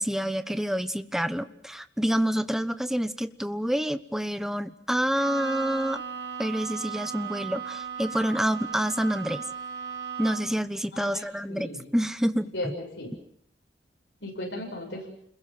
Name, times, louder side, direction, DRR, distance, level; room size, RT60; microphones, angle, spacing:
voice 1, 0.0-6.0 6.4-9.4 10.2-12.7, equal, 5° right, 12 dB, 1.0 m, -28 dB
Bowed string instrument, 5.1-10.7, right 7 dB, 80° right, 5.2 m, -36 dB
voice 2, 10.9-11.2 11.5-11.9 12.5-13.1 14.2-15.1, left 1 dB, 90° left, 0 dB, 7.4 m, -36 dB
30.0 x 21.5 x 7.5 m, 0.65 s
head